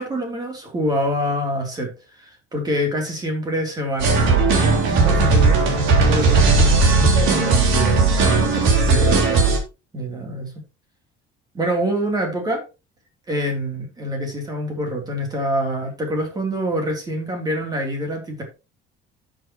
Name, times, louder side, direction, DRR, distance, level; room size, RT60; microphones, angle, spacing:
voice 1, 0.0-1.9 2.2-9.6 9.9-10.6 11.5-12.6 13.3-18.4, equal, 20° right, 2 dB, 3.3 m, -26 dB
sound 1, 4.0-9.6, right 3 dB, 65° right, 3.6 m, -16 dB
12.5 x 7.8 x 3.0 m, 0.29 s
cardioid pair, 175°, 21 cm